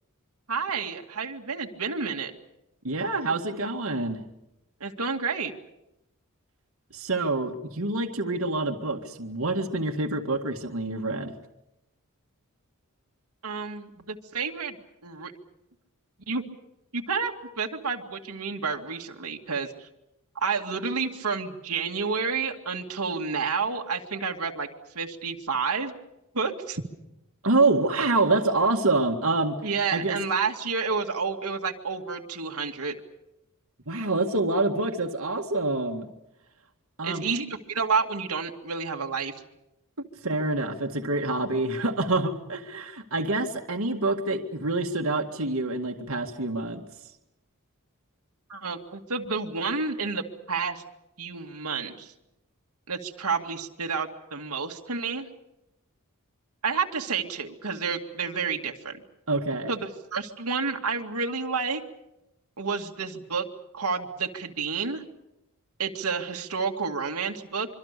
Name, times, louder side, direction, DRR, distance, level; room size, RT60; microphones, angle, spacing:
voice 1, 0.5-2.3 4.8-5.5 13.4-14.8 15.0-15.3 16.3-16.4 16.9-19.7 20.4-24.7 25.0-25.9 26.3-26.8 29.6-32.9 37.0-39.3 48.5-50.8 51.2-52.1 52.9-55.3 56.6-59.0 59.7-61.8 62.6-63.5 63.7-65.0 65.8-67.7, right 5 dB, 90° right, 2 dB, 2.2 m, -30 dB
voice 2, 2.8-4.2 6.9-11.3 27.4-29.5 29.9-30.2 33.9-36.1 37.0-37.3 40.2-46.8 59.3-59.7, right 2 dB, 70° right, 2 dB, 2.0 m, -26 dB
25.5 x 24.5 x 6.8 m, 0.89 s
head